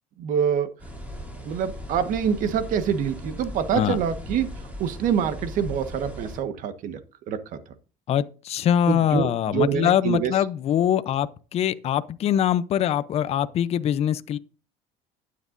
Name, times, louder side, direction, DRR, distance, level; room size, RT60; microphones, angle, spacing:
voice 1, 0.2-0.7 1.4-4.5 4.8-7.0 7.3-7.4 8.9-10.3, right 7 dB, 55° right, 1.4 m, -25 dB
sound 1, 0.8-6.4, equal, 10° right, 3.7 m, -38 dB
voice 2, 8.1-14.4, left 10 dB, 40° left, 0.6 m, -23 dB
12.0 x 9.4 x 2.6 m
cardioid pair, 130°, 16 cm